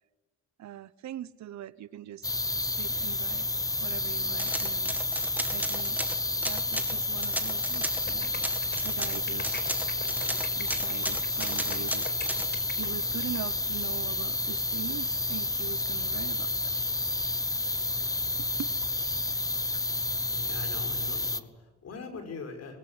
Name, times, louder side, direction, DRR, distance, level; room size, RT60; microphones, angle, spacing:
voice 1, 0.6-2.3 2.6-3.5 3.8-5.0 5.5-6.0 6.5-8.3 8.8-9.6 10.6-12.1 12.7-16.7 18.4-18.7, right 12 dB, 65° right, 1.0 m, -42 dB
sound 1, 2.2-21.4, left 2 dB, 10° left, 1.1 m, -30 dB
sound 2, 4.4-8.1 8.4-12.5, right 1 dB, 5° right, 2.2 m, -35 dB
sound 3, 8.0-13.4, left 3 dB, 35° left, 4.9 m, -42 dB
voice 2, 20.3-22.8, left 4 dB, 55° left, 5.7 m, -41 dB
21.5 x 17.0 x 9.8 m
cardioid pair, 90°, 30 cm